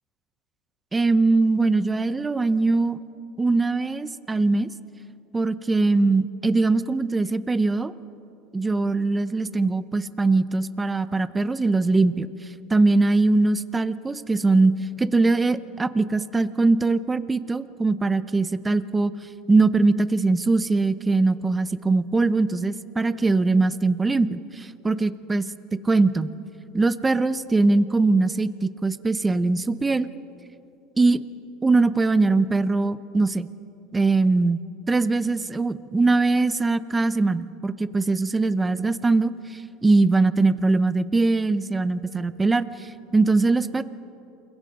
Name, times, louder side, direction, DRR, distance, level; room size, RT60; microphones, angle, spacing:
voice 1, 0.9-3.0 3.4-4.7 5.3-7.9 8.5-12.3 12.7-19.1 19.5-25.4 25.8-26.3 26.7-30.1 31.0-31.2 31.6-33.5 33.9-34.6 34.9-43.8, right 3 dB, 15° right, 14 dB, 0.7 m, -21 dB
28.0 x 22.5 x 5.3 m, 2.8 s
supercardioid pair, 125°, 0 cm